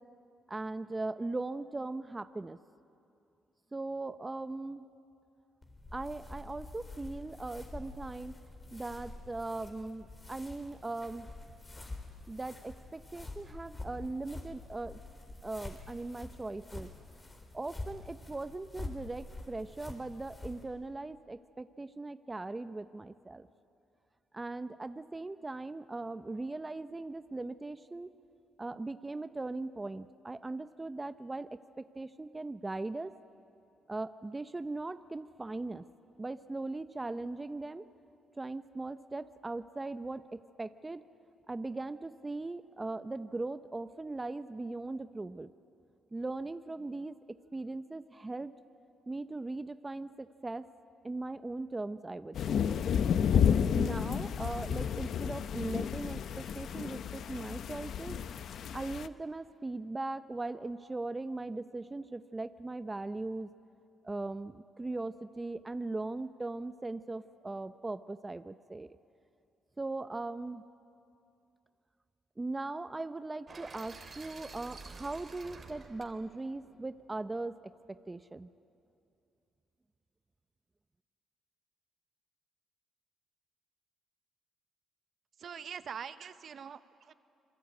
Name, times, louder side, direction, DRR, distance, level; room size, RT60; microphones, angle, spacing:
voice 1, 0.5-2.6 3.7-4.9 5.9-8.4 8.7-11.3 12.3-15.0 15.4-16.9 17.5-23.5 24.3-28.1 28.6-33.1 33.9-35.8 36.2-37.8 38.4-41.0 41.5-45.5 46.1-47.2 47.5-48.5 49.1-50.7 51.0-52.7 53.3-58.2 58.7-63.5 64.0-69.0 69.8-70.6 72.4-78.5, right 2 dB, 20° right, 12 dB, 0.7 m, -39 dB
sound 1, 5.6-20.6, left 2 dB, 25° left, 4.0 m, -47 dB
sound 2, 52.3-59.1, left 8 dB, 65° left, 0.8 m, -31 dB
sound 3, 73.5-77.5, right 4 dB, 40° right, 3.0 m, -50 dB
voice 2, 85.4-87.1, right 7 dB, 55° right, 13 dB, 0.9 m, -43 dB
27.0 x 22.5 x 9.4 m, 2.6 s
cardioid pair, 90°, 0 cm